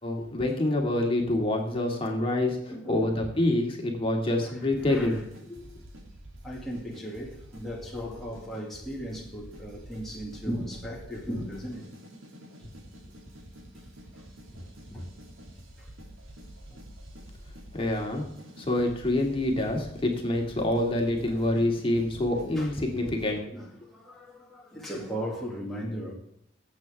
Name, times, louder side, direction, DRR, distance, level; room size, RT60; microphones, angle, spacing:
voice 1, 0.0-2.6 2.9-5.2 5.6-5.7 17.7-18.3 18.6-23.4, left 1 dB, 25° left, 2.3 m, -26 dB
voice 2, 2.5-3.2 4.4-5.1 6.4-11.9 12.6-12.7 14.5-14.6 14.9-15.0 15.8-15.9 16.7-16.8 21.2-21.4 22.6-22.7 23.5-26.1, equal, ahead, 2.1 m, -37 dB
sound 1, 4.7-23.4, equal, 90° right, 3.0 m, -48 dB
20.0 x 8.5 x 3.6 m
head